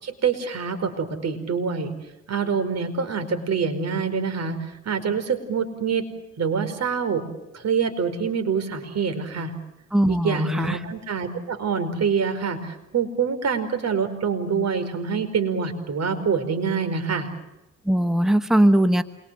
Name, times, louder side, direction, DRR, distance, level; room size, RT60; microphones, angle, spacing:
voice 1, 0.0-1.9 2.3-4.6 4.8-6.0 6.4-7.3 7.5-9.5 10.1-17.3, right 6 dB, 60° right, 8 dB, 4.9 m, -25 dB
voice 2, 9.9-10.8 17.9-19.0, right 1 dB, ahead, 10 dB, 1.2 m, -20 dB
28.0 x 23.5 x 7.6 m, 0.93 s
cardioid pair, 90°, 30 cm